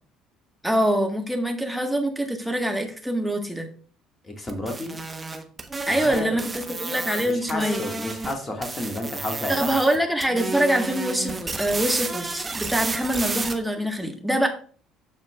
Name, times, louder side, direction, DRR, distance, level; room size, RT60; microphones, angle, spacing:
voice 1, 0.6-3.7 5.9-7.8 9.5-14.5, right 1 dB, ahead, 3 dB, 1.5 m, -24 dB
voice 2, 4.2-5.0 5.9-6.3 7.2-9.8, left 1 dB, 25° left, 3 dB, 1.9 m, -31 dB
sound 1, 4.5-8.3 8.6-10.0 10.2-13.5, right 3 dB, 20° right, 1.1 m, -31 dB
13.5 x 4.5 x 2.4 m, 0.43 s
figure-of-eight pair, 55°, 0 cm